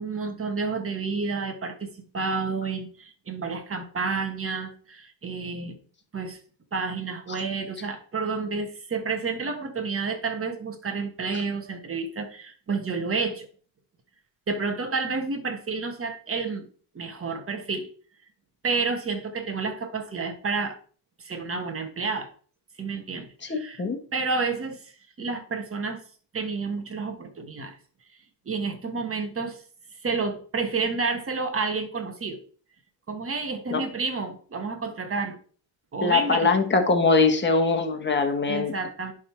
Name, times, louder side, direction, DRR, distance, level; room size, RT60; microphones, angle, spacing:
voice 1, 0.0-5.8 6.1-6.4 6.7-13.5 14.5-16.7 16.9-17.9 18.6-20.8 21.2-22.3 22.8-23.8 24.1-24.9 25.2-26.0 26.3-27.7 28.4-29.6 30.0-32.4 33.1-35.4 35.9-36.5 38.5-39.1, right 4 dB, 30° right, 5 dB, 1.5 m, -30 dB
voice 2, 23.5-24.0 33.7-33.8 36.0-38.7, left 4 dB, 25° left, 4 dB, 1.4 m, -22 dB
10.5 x 3.8 x 4.5 m, 0.42 s
cardioid pair, 120°, 45 cm